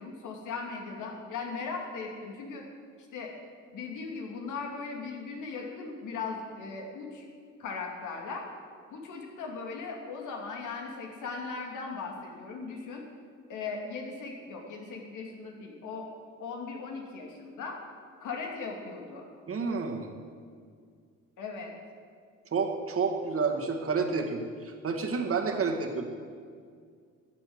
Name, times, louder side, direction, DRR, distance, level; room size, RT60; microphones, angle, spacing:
voice 1, 0.0-2.6 3.1-3.3 3.7-7.3 7.6-8.5 8.9-13.0 13.5-16.1 16.4-17.8 18.2-19.3 21.4-21.7, left 4 dB, 80° left, 1 dB, 2.6 m, -38 dB
voice 2, 19.5-20.1 22.5-26.1, right 4 dB, 50° right, 3 dB, 2.0 m, -30 dB
13.5 x 8.4 x 8.1 m, 2.1 s
cardioid pair, 90°, 30 cm